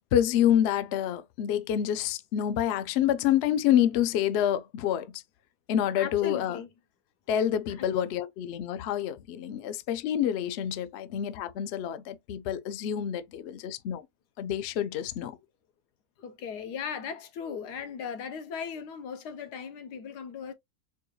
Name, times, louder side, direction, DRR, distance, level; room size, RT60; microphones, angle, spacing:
voice 1, 0.1-5.2 5.7-6.6 7.3-14.0 14.4-15.4, left 10 dB, 75° left, 0.6 m, -27 dB
voice 2, 5.9-6.7 7.7-7.9 16.2-20.5, left 6 dB, 90° left, 1.3 m, -38 dB
4.5 x 2.3 x 3.0 m
omnidirectional pair, 1.7 m